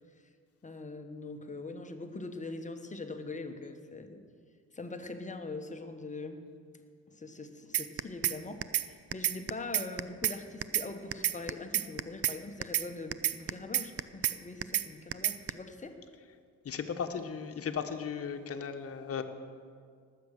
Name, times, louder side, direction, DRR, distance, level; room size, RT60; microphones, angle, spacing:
voice 1, 0.6-4.2 4.7-6.5 7.1-16.0, left 3 dB, 25° left, 6 dB, 1.3 m, -42 dB
sound 1, 7.7-8.4 8.6-8.9 9.1-10.4 10.6-10.9 11.1-12.4 12.6-12.9 13.1-14.4 14.6-14.9 15.1-15.5, right 11 dB, 50° right, 0.6 m, -29 dB
voice 2, 16.6-19.2, left 6 dB, 50° left, 6 dB, 1.3 m, -36 dB
19.0 x 7.9 x 6.6 m, 2.1 s
cardioid pair, 90°, 30 cm